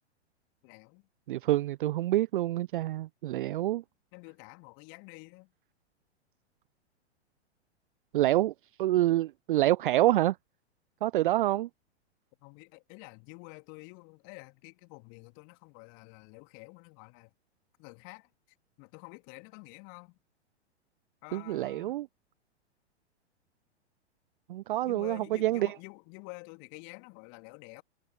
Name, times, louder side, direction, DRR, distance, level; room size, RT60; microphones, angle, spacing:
voice 1, 0.6-1.0 4.1-5.5 12.4-17.3 17.8-18.3 18.8-20.2 21.2-22.0 24.8-27.8, left 33 dB, 40° left, 2.9 m, -49 dB
voice 2, 1.3-3.8 8.1-8.5 8.8-10.4 11.0-11.7 21.3-22.1 24.5-25.7, right 15 dB, 50° right, 0.5 m, -27 dB
figure-of-eight pair, 105°, 34 cm